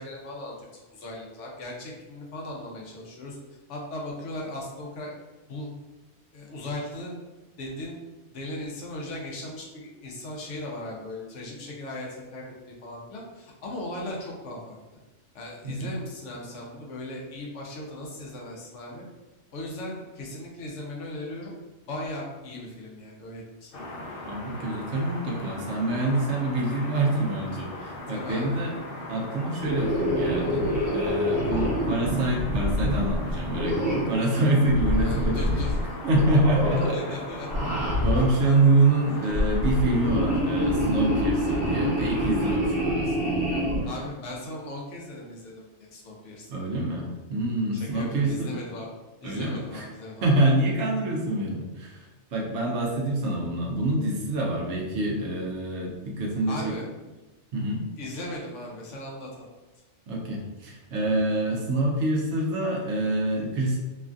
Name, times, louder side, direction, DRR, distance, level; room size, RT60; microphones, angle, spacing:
voice 1, 0.0-3.4 3.7-5.1 5.5-5.7 6.3-7.1 7.6-8.0 8.3-14.8 15.3-19.0 19.5-21.5 21.9-23.7 28.1-28.6 34.9-36.0 36.9-37.7 43.3-43.5 43.8-46.6 47.7-48.9 49.2-50.3 56.5-56.9 58.0-59.5, left 1 dB, 80° left, -2 dB, 1.0 m, -38 dB
voice 2, 15.6-15.9 24.2-28.8 29.1-35.6 36.0-37.2 38.0-43.7 46.5-48.6 49.2-49.9 50.2-56.7 57.5-57.8 60.1-63.8, right 2 dB, 75° right, -1 dB, 1.0 m, -26 dB
sound 1, 23.7-42.6, left 2 dB, 60° left, 0.7 m, -39 dB
sound 2, 29.6-34.2 34.7-35.8 36.1-37.0 37.4-38.5 39.2-43.8, equal, 45° right, 1.4 m, -26 dB
3.2 x 2.3 x 2.5 m, 1.1 s
omnidirectional pair, 1.2 m